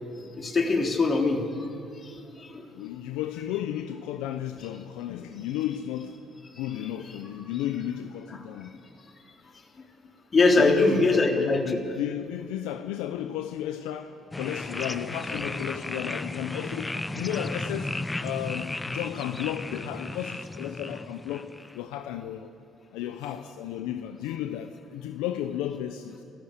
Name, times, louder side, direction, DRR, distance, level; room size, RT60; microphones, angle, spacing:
voice 1, 0.4-1.7 1.9-2.7 6.6-6.7 10.3-11.8, left 3 dB, 40° left, 3.4 m, -23 dB
voice 2, 2.7-6.3 6.5-8.7 10.6-17.9 18.2-21.5 21.7-22.5 22.9-26.2, left 11 dB, 85° left, 0.8 m, -33 dB
sound 1, 14.3-21.8, left 2 dB, 20° left, 0.9 m, -34 dB
27.0 x 15.0 x 8.2 m
supercardioid pair, 65°, 0 cm